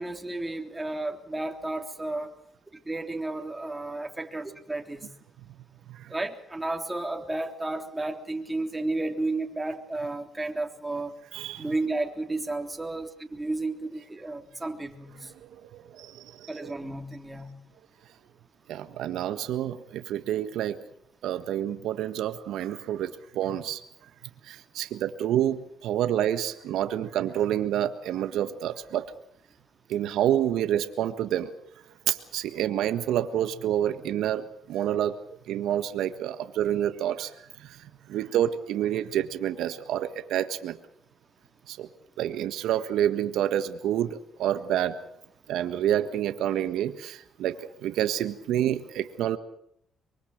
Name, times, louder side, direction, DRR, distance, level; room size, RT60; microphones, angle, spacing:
voice 1, 0.0-2.3 2.8-5.1 6.1-11.1 11.6-15.3 16.5-17.6, right 2 dB, 15° right, 4 dB, 3.4 m, -32 dB
voice 2, 11.3-11.7 15.7-16.7 18.7-20.8 21.2-23.8 24.5-29.0 29.9-31.5 32.1-35.1 35.5-37.3 37.6-37.7 38.1-40.8 41.7-41.9 42.2-45.0 45.5-47.6 47.8-49.4, right 11 dB, 85° right, 9 dB, 1.5 m, -28 dB
24.0 x 23.5 x 6.6 m, 0.71 s
cardioid pair, 90°, 0 cm